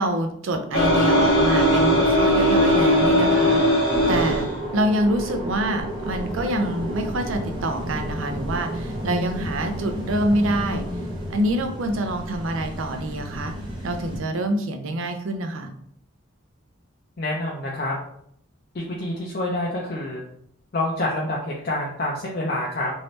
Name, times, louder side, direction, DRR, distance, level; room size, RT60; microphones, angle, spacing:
voice 1, 0.0-3.8 4.1-10.8 11.3-13.5 13.8-15.7, right 1 dB, 75° right, 5 dB, 0.5 m, -26 dB
sound 1, 0.7-4.5, equal, 65° left, 1.2 m, -18 dB
sound 2, 3.9-14.2, equal, 20° right, 0.6 m, -31 dB
voice 2, 17.2-18.0 18.7-20.2 20.7-22.9, left 1 dB, 45° left, -3 dB, 0.5 m, -27 dB
3.1 x 2.7 x 3.1 m, 0.69 s
head